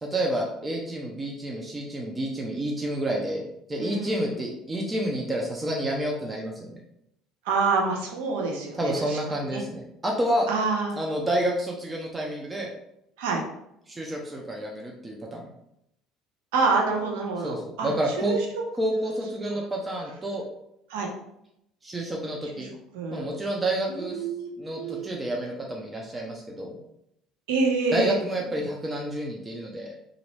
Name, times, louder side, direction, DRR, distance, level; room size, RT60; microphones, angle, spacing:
voice 1, 0.0-3.4 3.7-6.7 8.8-10.5 11.0-12.7 13.9-15.5 17.4-18.4 18.8-20.4 21.8-22.7 23.1-24.2 24.6-26.7 27.9-29.9, right 1 dB, 20° right, -1 dB, 0.6 m, -29 dB
voice 2, 3.8-4.4 7.4-9.2 9.5-9.6 10.5-11.0 13.2-13.4 16.5-18.4 20.9-21.1 22.4-22.7 22.9-23.3 23.9-24.5 24.7-25.1 27.5-28.2, right 4 dB, 65° right, 0 dB, 0.7 m, -27 dB
2.9 x 2.5 x 3.2 m, 0.78 s
figure-of-eight pair, 60°, 0 cm